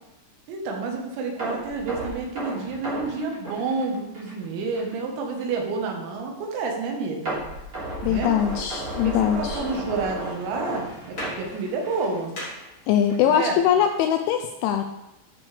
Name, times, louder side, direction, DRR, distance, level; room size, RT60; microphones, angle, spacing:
voice 1, 0.5-7.4 8.1-8.3 9.0-12.3 13.3-13.6, right 4 dB, 85° right, 2 dB, 4.1 m, -29 dB
sound 1, 1.4-4.4 4.7-4.9 5.4-5.5 7.3-12.2 12.5-12.7 13.1-13.2, right 1 dB, 25° right, 3.0 m, -33 dB
voice 2, 8.0-9.6 12.9-14.9, left 9 dB, 85° left, 5 dB, 2.7 m, -22 dB
sound 2, 8.3-13.5, left 1 dB, 30° left, 2.6 m, -43 dB
13.0 x 7.0 x 3.4 m, 0.95 s
omnidirectional pair, 5.9 m